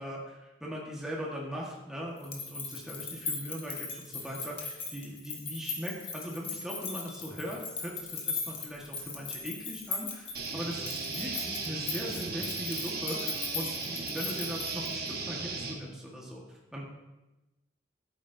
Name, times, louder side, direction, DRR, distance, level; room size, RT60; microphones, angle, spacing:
voice 1, 0.0-16.8, equal, 5° right, -4 dB, 1.5 m, -40 dB
sound 1, 2.2-15.2, left 4 dB, 30° left, 1.2 m, -38 dB
sound 2, 10.3-15.7, right 4 dB, 55° right, 1.2 m, -36 dB
11.0 x 8.9 x 2.7 m, 1.0 s
head